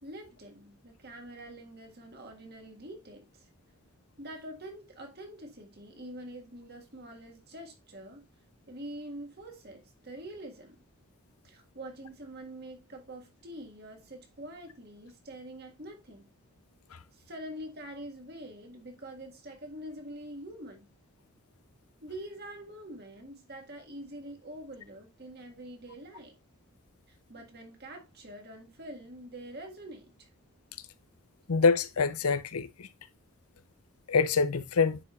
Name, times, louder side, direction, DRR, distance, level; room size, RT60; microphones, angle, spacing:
voice 1, 0.0-3.5 4.2-8.2 8.7-10.8 11.4-16.3 17.1-20.9 22.0-26.4 27.1-30.3, right 1 dB, 45° right, 1.9 m, -45 dB
voice 2, 31.5-32.9 34.1-35.0, left 4 dB, 85° left, 0.7 m, -26 dB
9.9 x 4.8 x 2.5 m
head